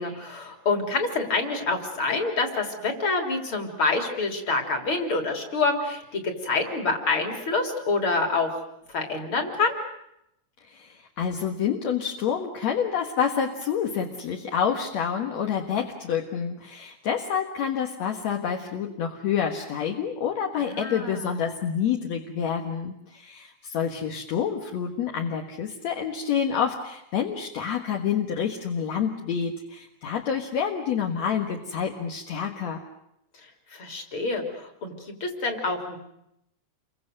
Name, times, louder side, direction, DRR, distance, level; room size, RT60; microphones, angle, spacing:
voice 1, 0.0-8.5 8.9-9.8 20.5-21.3 33.7-36.0, left 3 dB, 45° left, 4 dB, 4.2 m, -27 dB
voice 2, 10.6-32.8, left 7 dB, 65° left, 2 dB, 2.8 m, -28 dB
29.5 x 24.0 x 6.7 m, 0.80 s
omnidirectional pair, 3.3 m